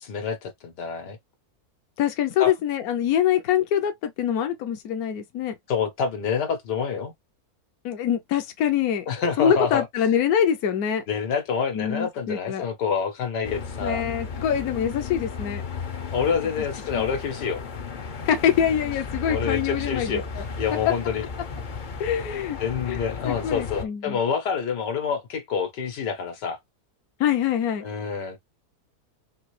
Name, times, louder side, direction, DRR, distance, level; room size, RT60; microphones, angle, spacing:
voice 1, 0.0-1.2 2.4-2.5 5.7-7.1 9.1-9.8 11.1-14.0 16.1-17.6 19.3-20.2 20.6-21.3 22.6-26.6 27.8-28.4, left 6 dB, 85° left, 1.9 m, -27 dB
voice 2, 2.0-5.5 7.8-9.1 9.4-11.0 11.7-12.7 13.8-15.6 16.9-17.1 18.3-20.4 20.9-21.0 22.0-22.6 22.9-23.0 23.2-24.2 27.2-27.8, left 9 dB, 70° left, 1.2 m, -24 dB
sound 1, 13.4-23.8, left 5 dB, 50° left, 0.6 m, -34 dB
4.8 x 2.8 x 3.2 m
omnidirectional pair, 1.8 m